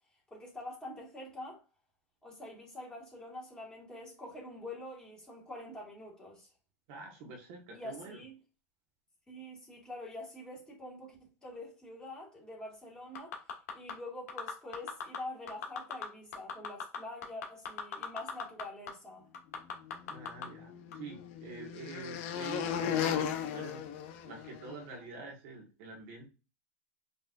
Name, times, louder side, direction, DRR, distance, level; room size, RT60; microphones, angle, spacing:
voice 1, 0.3-1.6 2.2-6.5 7.7-8.3 9.3-13.4 13.7-19.3, left 1 dB, 10° left, 2.1 m, -45 dB
voice 2, 6.9-8.2 20.1-23.8 24.2-26.3, right 4 dB, 50° right, 1.5 m, -46 dB
sound 1, 13.1-13.9 14.3-15.2 15.5-16.0 16.3-18.6 18.9-19.0 19.3-20.4 20.9-21.0, left 6 dB, 70° left, 1.5 m, -37 dB
sound 2, 20.1-24.8, left 9 dB, 50° left, 0.6 m, -36 dB
5.4 x 3.3 x 2.5 m
supercardioid pair, 145°, 9 cm